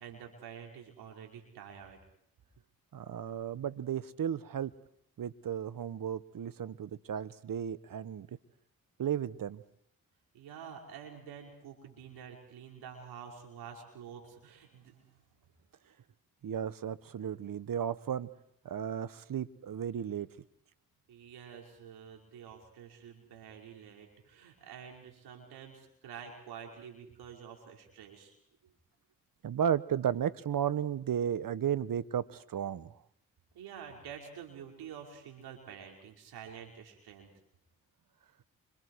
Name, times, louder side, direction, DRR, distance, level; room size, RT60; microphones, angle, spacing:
voice 1, 0.0-2.0 10.3-15.2 21.1-28.4 33.5-37.3, right 7 dB, 80° right, 1 dB, 5.3 m, -48 dB
voice 2, 2.9-4.7 5.2-8.3 9.0-9.6 16.4-18.3 18.6-20.3 29.4-32.9, right 9 dB, 60° right, 15 dB, 1.4 m, -34 dB
29.0 x 26.0 x 4.8 m, 0.70 s
hypercardioid pair, 40°, 38 cm